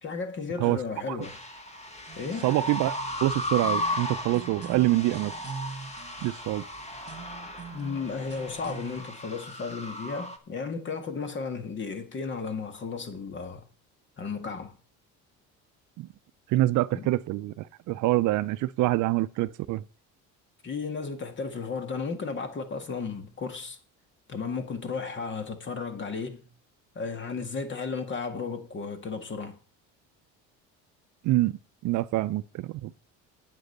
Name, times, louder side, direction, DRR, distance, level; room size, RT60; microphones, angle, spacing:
voice 1, 0.0-1.4 2.2-2.5 7.7-13.6 14.2-14.8 16.9-17.1 20.6-23.8 24.3-26.5 27.0-29.6, left 5 dB, 35° left, 1.9 m, -34 dB
sound 1, 1.2-10.4, left 1 dB, 20° left, 1.7 m, -36 dB
sound 2, 2.1-9.1, right 6 dB, 30° right, 1.6 m, -44 dB
voice 2, 2.4-5.3 6.2-6.6 16.0-16.1 16.5-19.8 31.2-31.5 31.8-32.9, right 17 dB, 65° right, 0.6 m, -26 dB
9.2 x 7.9 x 6.7 m
cardioid pair, 115°, 33 cm